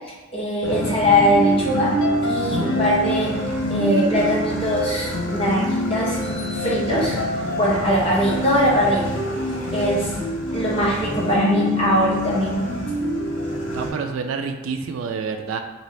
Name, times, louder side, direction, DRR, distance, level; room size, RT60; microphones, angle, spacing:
voice 1, 0.0-1.9 2.2-6.2 6.5-7.2 7.5-9.1 9.7-10.1 10.5-12.7, equal, 30° left, -5 dB, 0.9 m, -21 dB
sound 1, 0.6-13.9, equal, 80° left, 0.8 m, -25 dB
voice 2, 13.7-15.6, right 5 dB, 90° right, 6 dB, 0.3 m, -28 dB
3.0 x 2.7 x 3.2 m, 1.2 s
head